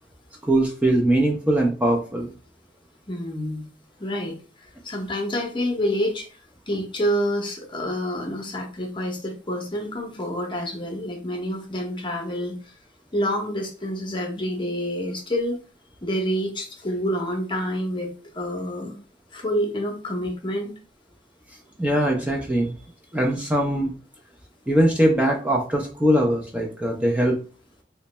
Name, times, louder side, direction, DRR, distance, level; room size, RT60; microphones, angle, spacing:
voice 1, 0.4-2.3 21.8-22.7 23.1-23.9 24.7-27.4, right 1 dB, 10° right, 0 dB, 0.5 m, -21 dB
voice 2, 3.1-3.7 4.0-4.4 4.8-6.3 6.7-12.6 13.1-15.6 16.0-19.0 19.3-20.7, equal, 25° left, 2 dB, 0.8 m, -27 dB
3.1 x 2.2 x 4.0 m, 0.37 s
head